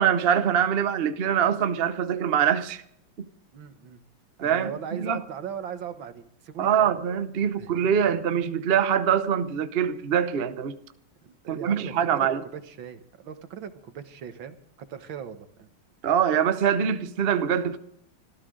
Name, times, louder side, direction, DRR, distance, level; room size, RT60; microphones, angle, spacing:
voice 1, 0.0-2.8 3.2-3.3 4.4-5.2 6.6-10.8 11.5-12.4 16.0-17.8, right 8 dB, 55° right, 0.6 m, -24 dB
voice 2, 3.5-4.0 4.4-6.9 7.6-7.9 11.2-15.7, right 8 dB, 70° right, 2.0 m, -39 dB
25.0 x 14.0 x 3.8 m
omnidirectional pair, 2.2 m